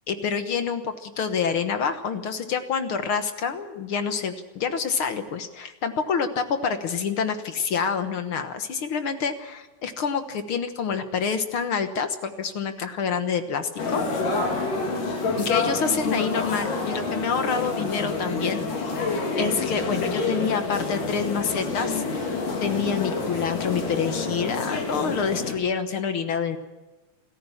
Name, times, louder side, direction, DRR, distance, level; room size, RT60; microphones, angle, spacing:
voice 1, 0.1-14.0 15.4-18.6 19.4-22.0 22.6-26.6, left 6 dB, 55° left, 9 dB, 1.6 m, -27 dB
sound 1, 13.8-25.6, left 3 dB, 80° left, 5.2 m, -28 dB
27.0 x 14.5 x 7.2 m, 1.2 s
omnidirectional pair, 3.7 m